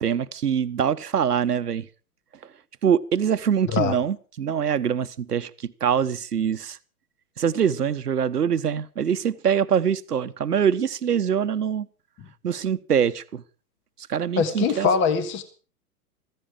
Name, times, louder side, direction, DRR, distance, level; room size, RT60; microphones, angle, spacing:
voice 1, 0.0-1.9 2.8-6.8 7.4-11.9 12.4-13.4 14.1-14.9, right 8 dB, 85° right, 1.0 m, -24 dB
voice 2, 14.4-15.4, left 6 dB, 25° left, 1.6 m, -22 dB
15.0 x 14.5 x 4.9 m
figure-of-eight pair, 110°, 45 cm